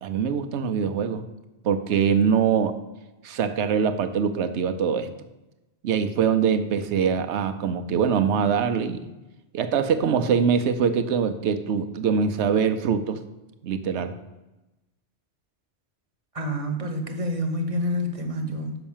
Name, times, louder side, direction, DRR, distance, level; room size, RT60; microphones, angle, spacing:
voice 1, 0.0-1.2 1.6-2.8 3.2-5.1 5.8-9.1 9.5-13.2 13.6-14.2, right 7 dB, 75° right, 10 dB, 1.0 m, -23 dB
voice 2, 16.3-18.8, equal, 30° right, 4 dB, 1.1 m, -28 dB
6.1 x 5.8 x 7.2 m, 1.0 s
omnidirectional pair, 1.2 m